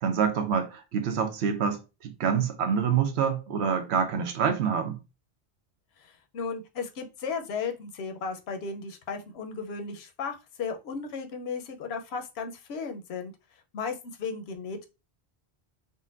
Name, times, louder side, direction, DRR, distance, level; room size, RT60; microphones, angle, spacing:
voice 1, 0.0-5.0, right 7 dB, 85° right, 0.9 m, -26 dB
voice 2, 6.0-13.3 13.7-14.9, left 5 dB, 80° left, 0.8 m, -35 dB
3.8 x 2.1 x 2.4 m
omnidirectional pair, 1.1 m